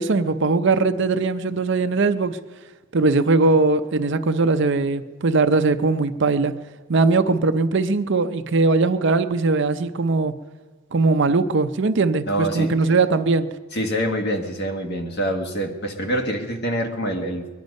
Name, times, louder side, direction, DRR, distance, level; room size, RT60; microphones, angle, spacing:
voice 1, 0.0-2.4 2.9-6.5 6.9-10.3 10.9-13.5, right 3 dB, 55° right, 10 dB, 0.6 m, -20 dB
voice 2, 12.3-12.7 13.7-17.5, right 1 dB, 50° left, 3 dB, 1.6 m, -25 dB
22.5 x 10.5 x 5.3 m, 1.3 s
head